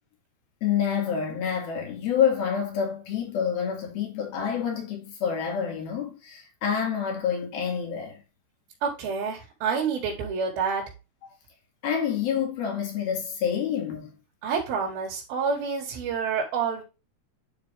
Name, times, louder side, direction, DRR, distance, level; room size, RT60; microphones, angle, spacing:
voice 1, 0.6-8.2 11.8-14.2, left 8 dB, 75° left, 4.1 m, -27 dB
voice 2, 8.8-10.8 14.4-16.8, right 5 dB, 75° right, 3.8 m, -28 dB
11.0 x 3.9 x 3.6 m
omnidirectional pair, 4.4 m